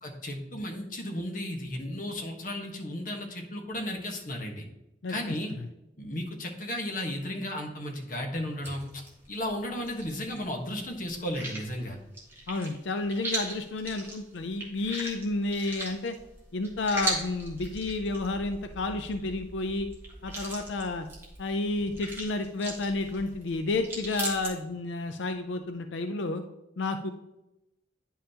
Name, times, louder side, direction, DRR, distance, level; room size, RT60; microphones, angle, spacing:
voice 1, 0.0-4.6 5.1-5.5 6.0-8.8 9.3-12.0, left 1 dB, 45° left, 2 dB, 1.3 m, -34 dB
voice 2, 5.0-5.7 12.5-16.1 16.5-19.9 20.2-21.1 21.4-26.4 26.8-27.1, left 2 dB, 85° left, 7 dB, 0.5 m, -31 dB
sound 1, 8.6-10.4 10.7-24.5, right 2 dB, 15° right, 1.7 m, -39 dB
9.8 x 5.5 x 2.9 m, 0.92 s
head